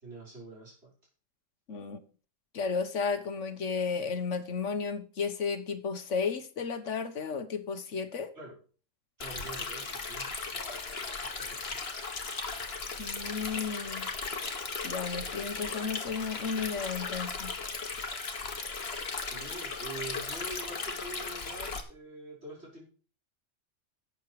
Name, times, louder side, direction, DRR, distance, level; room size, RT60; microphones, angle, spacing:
voice 1, 0.0-0.9 8.3-8.6 9.2-10.6 11.2-12.0 19.3-22.9, right 2 dB, 60° right, 5.5 m, -45 dB
voice 2, 1.7-2.0 2.5-8.3 13.0-14.1 14.8-17.5, left 5 dB, 75° left, 1.4 m, -33 dB
Stream, 9.2-21.8, left 4 dB, 55° left, 1.8 m, -37 dB
12.0 x 7.9 x 4.6 m
omnidirectional pair, 1.3 m